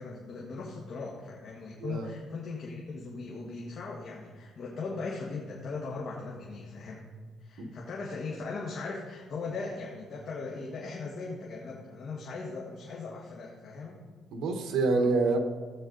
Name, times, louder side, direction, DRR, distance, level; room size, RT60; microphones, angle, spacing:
voice 1, 0.0-7.1 7.4-14.0, left 3 dB, 45° left, -3 dB, 1.7 m, -39 dB
voice 2, 14.3-15.4, right 3 dB, 75° right, 4 dB, 1.4 m, -27 dB
14.0 x 8.6 x 4.0 m, 1.5 s
cardioid pair, 150°, 0 cm